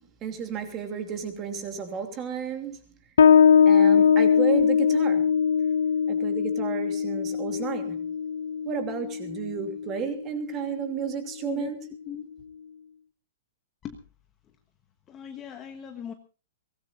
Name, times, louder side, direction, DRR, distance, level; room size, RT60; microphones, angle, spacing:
voice 1, 0.2-2.8 3.7-5.3 6.1-8.0 8.6-11.8, right 7 dB, 15° right, 2.9 m, -32 dB
Bass guitar, 3.2-10.3, left 7 dB, 80° left, 1.2 m, -21 dB
voice 2, 11.4-11.8 12.0-12.3 13.8-14.0 15.1-16.1, left 9 dB, 15° left, 1.2 m, -38 dB
23.5 x 19.0 x 2.6 m
hypercardioid pair, 180°, 0 cm